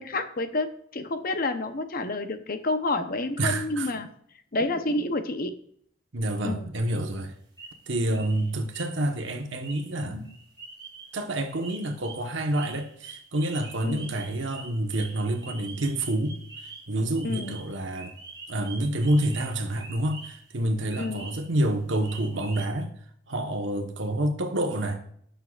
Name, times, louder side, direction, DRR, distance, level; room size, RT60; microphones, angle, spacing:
voice 1, 0.0-4.1 4.5-5.6 6.4-6.7 8.1-8.2 13.8-14.1 17.2-17.6 21.0-21.3, left 2 dB, 50° left, 0.8 m, -29 dB
voice 2, 3.4-3.9 6.1-7.3 7.9-10.3 11.1-16.4 16.9-18.1 18.5-22.9 23.3-25.0, right 1 dB, 75° right, 1.3 m, -28 dB
sound 1, 6.9-7.0 7.6-7.9 8.1-20.5 20.9-21.6 22.0-22.7, right 4 dB, 25° right, 3.2 m, -45 dB
17.0 x 6.7 x 2.5 m
head